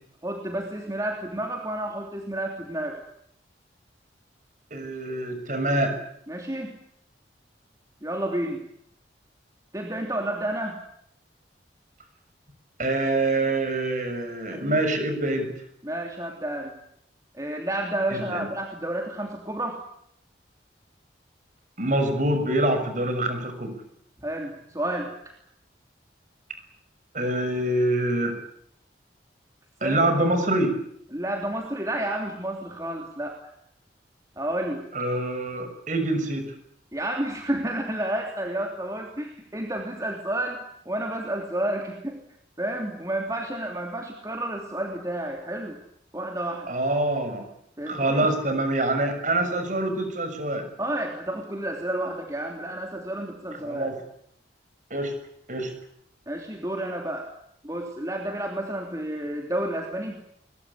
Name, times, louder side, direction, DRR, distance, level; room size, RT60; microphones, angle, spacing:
voice 1, 0.2-3.0 6.3-6.7 8.0-8.6 9.7-10.8 14.5-14.8 15.8-16.8 17.3-19.8 24.2-25.3 29.8-30.1 31.1-33.4 34.4-34.9 36.9-42.2 42.6-45.8 46.1-46.7 47.8-48.3 50.8-53.9 56.3-57.3 57.6-60.2, right 1 dB, 20° right, 1 dB, 3.2 m, -30 dB
voice 2, 4.7-6.0 12.8-15.5 18.1-18.5 21.8-23.8 27.1-28.4 29.8-30.8 34.9-36.5 46.7-47.5 47.9-50.7 53.6-54.0 54.9-55.1 55.5-55.7, right 1 dB, 45° right, 7 dB, 6.5 m, -25 dB
22.5 x 22.0 x 10.0 m, 0.71 s
head